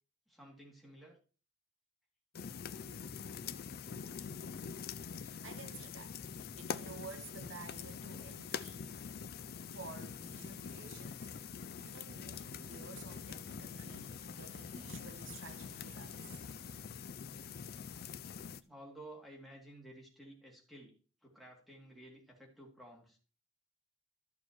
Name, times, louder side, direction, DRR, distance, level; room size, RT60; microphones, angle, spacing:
voice 1, 0.3-1.2 18.6-20.9 21.2-23.2, right 1 dB, ahead, 2.7 m, -54 dB
sound 1, 2.3-18.6, left 6 dB, 50° left, 0.4 m, -45 dB
voice 2, 5.0-8.9 9.7-11.3 11.8-16.4, right 5 dB, 70° right, 0.9 m, -52 dB
sound 2, 8.7-16.9, right 2 dB, 85° right, 2.3 m, -67 dB
13.5 x 6.6 x 3.1 m
head